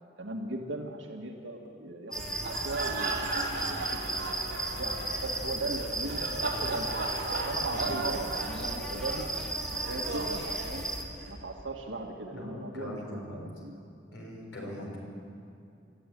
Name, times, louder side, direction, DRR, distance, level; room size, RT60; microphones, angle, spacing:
voice 1, 0.2-6.9 7.5-9.3 9.8-10.9 11.3-13.8, right 2 dB, 80° right, 0 dB, 2.0 m, -38 dB
sound 1, 2.1-11.0, right 1 dB, 5° left, 2.5 m, -35 dB
sound 2, 2.3-11.3, right 3 dB, 60° right, 4.4 m, -37 dB
voice 2, 12.3-13.4 14.1-15.0, left 1 dB, 80° left, -1 dB, 6.3 m, -41 dB
25.5 x 14.5 x 9.4 m, 2.5 s
head